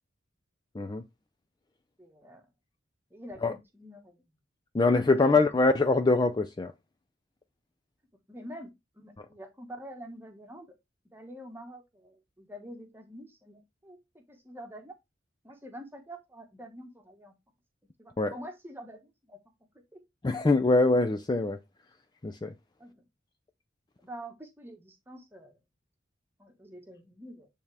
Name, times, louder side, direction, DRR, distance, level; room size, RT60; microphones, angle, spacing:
voice 1, 2.0-2.5 3.1-4.2 5.3-5.5 8.3-10.7 11.1-15.0 15.4-17.3 18.0-19.4 19.7-20.0 22.8-23.0 24.0-25.6 26.4-27.5, equal, 10° right, 1.2 m, -46 dB
voice 2, 4.7-6.7 18.2-18.3 20.2-21.6 22.2-22.5, left 3 dB, 20° left, 0.4 m, -24 dB
8.6 x 3.5 x 3.3 m
head